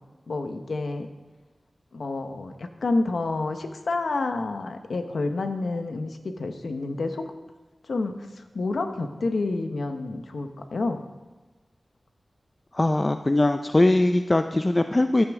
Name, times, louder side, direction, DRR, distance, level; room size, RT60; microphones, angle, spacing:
voice 1, 0.3-1.1 1.9-7.3 7.9-11.0, left 3 dB, 80° left, 6 dB, 1.0 m, -29 dB
voice 2, 12.7-15.2, left 2 dB, 35° left, 8 dB, 0.5 m, -21 dB
14.5 x 9.6 x 3.6 m, 1.2 s
cardioid pair, 55°, 0 cm